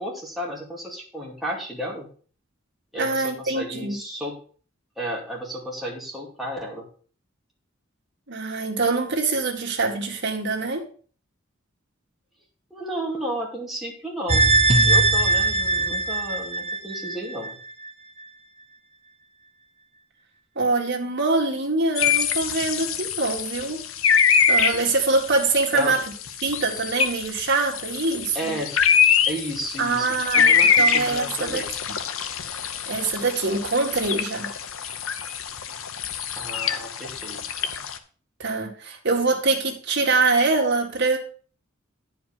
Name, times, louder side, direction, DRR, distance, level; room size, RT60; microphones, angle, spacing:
voice 1, 0.0-2.1 2.9-4.4 5.0-6.9 12.7-14.4 14.8-17.5 25.7-26.0 28.3-28.8 29.3-31.7 36.3-37.4, equal, ahead, -3 dB, 2.4 m, -33 dB
voice 2, 2.9-4.0 8.3-10.8 20.6-23.8 24.5-26.0 26.4-28.6 29.8-31.6 32.9-34.5 38.4-41.2, right 3 dB, 60° right, 0 dB, 2.0 m, -24 dB
sound 1, 14.3-17.5 17.9-18.0, right 2 dB, 30° right, 0.9 m, -20 dB
sound 2, 22.0-38.0, left 7 dB, 70° left, 0.8 m, -24 dB
9.8 x 5.1 x 5.6 m, 0.42 s
head